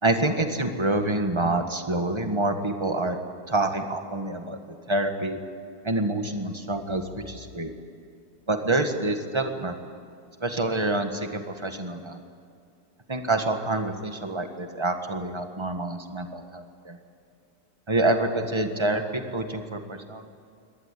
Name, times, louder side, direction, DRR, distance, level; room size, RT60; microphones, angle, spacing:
voice 1, 0.0-3.2 3.5-5.4 5.8-7.7 8.5-9.7 10.4-12.2 13.1-17.0 17.9-20.3, right 2 dB, 15° right, 6 dB, 1.7 m, -27 dB
24.0 x 19.0 x 8.6 m, 2.4 s
omnidirectional pair, 1.8 m